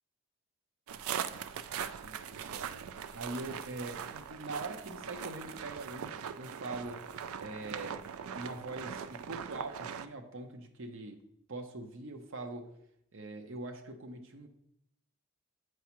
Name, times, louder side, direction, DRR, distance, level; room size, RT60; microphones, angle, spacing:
sound 1, 0.9-10.1, right 8 dB, 80° right, 0.4 m, -41 dB
voice 1, 1.8-2.7 3.1-7.0 7.3-8.0 8.3-11.2 11.5-12.7 13.1-14.5, right 2 dB, 60° right, 5 dB, 0.8 m, -43 dB
8.2 x 4.6 x 3.0 m, 0.77 s
head